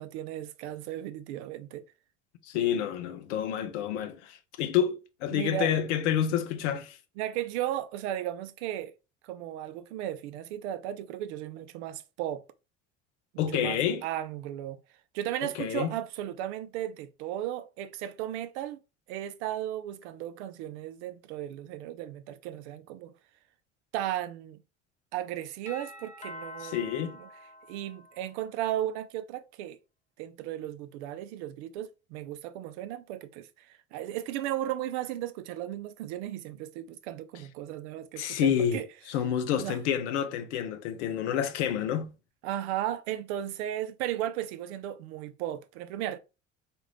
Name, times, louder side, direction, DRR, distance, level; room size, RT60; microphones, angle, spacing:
voice 1, 0.0-1.8 5.3-5.7 7.2-8.9 9.2-12.4 13.3-14.8 15.1-18.8 19.1-23.1 23.9-24.6 25.1-27.3 27.7-29.8 30.2-38.9 39.5-39.8 42.4-46.2, right 12 dB, 65° right, 0.5 m, -35 dB
voice 2, 2.4-7.0 13.4-14.0 15.6-15.9 26.6-27.1 38.2-38.8 39.1-42.1, left 9 dB, 70° left, 0.6 m, -28 dB
Doorbell, 25.7-28.5, left 1 dB, 20° left, 1.0 m, -46 dB
3.7 x 2.5 x 3.2 m
hypercardioid pair, 65°, 36 cm